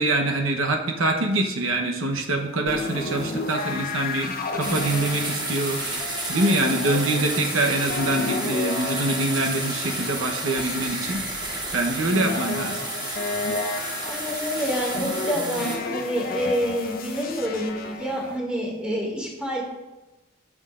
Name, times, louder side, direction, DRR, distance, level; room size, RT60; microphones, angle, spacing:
voice 1, 0.0-11.2 11.7-12.8, right 2 dB, 85° right, 2 dB, 0.9 m, -25 dB
sound 1, 2.7-18.4, left 3 dB, 45° left, 0.8 m, -32 dB
sound 2, 4.6-15.8, right 2 dB, 20° right, 1.1 m, -31 dB
voice 2, 14.0-19.6, equal, 5° right, -3 dB, 2.1 m, -28 dB
13.0 x 6.3 x 2.5 m, 1.1 s
head